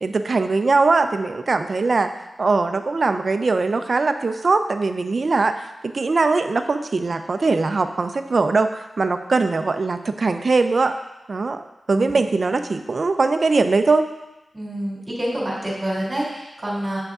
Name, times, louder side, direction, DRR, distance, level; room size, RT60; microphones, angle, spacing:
voice 1, 0.0-2.1 2.4-5.5 5.8-11.0 11.3-14.0, right 3 dB, 55° right, 8 dB, 0.5 m, -21 dB
voice 2, 14.5-17.0, right 1 dB, 25° right, -6 dB, 2.3 m, -27 dB
7.5 x 5.2 x 3.7 m, 0.98 s
wide cardioid pair, 70°, 0 cm